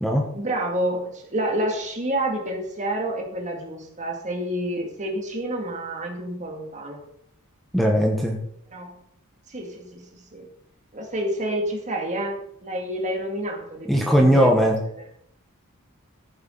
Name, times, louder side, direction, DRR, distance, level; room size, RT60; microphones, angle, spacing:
voice 1, 0.3-7.0 8.7-9.0 9.5-10.5 10.9-14.5, right 1 dB, 35° right, 1 dB, 2.3 m, -29 dB
voice 2, 7.7-8.4 13.9-14.8, equal, ahead, 0 dB, 1.1 m, -19 dB
15.0 x 7.8 x 3.9 m, 0.72 s
head